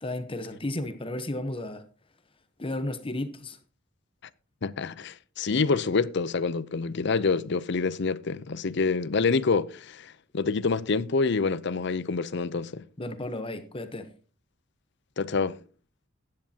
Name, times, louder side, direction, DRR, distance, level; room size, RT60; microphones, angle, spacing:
voice 1, 0.0-1.8 2.6-3.6 13.0-14.1, left 1 dB, 25° left, 1.0 m, -33 dB
voice 2, 4.6-12.8 15.2-15.6, left 4 dB, 60° left, 0.6 m, -27 dB
16.0 x 10.5 x 2.8 m
head